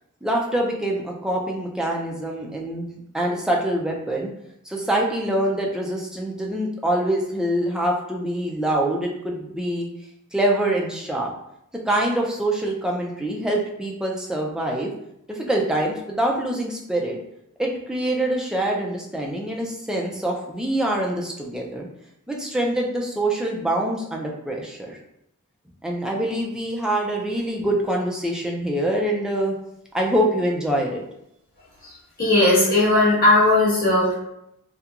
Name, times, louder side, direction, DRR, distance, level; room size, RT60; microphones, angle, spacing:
voice 1, 0.2-4.3 4.7-9.9 10.3-11.3 11.9-14.9 15.3-17.2 17.6-21.9 22.3-25.0 25.8-29.5 29.9-31.0, right 1 dB, 5° right, -2 dB, 0.3 m, -25 dB
voice 2, 32.2-34.1, left 2 dB, 40° left, -8 dB, 1.1 m, -17 dB
2.8 x 2.2 x 2.4 m, 0.79 s
head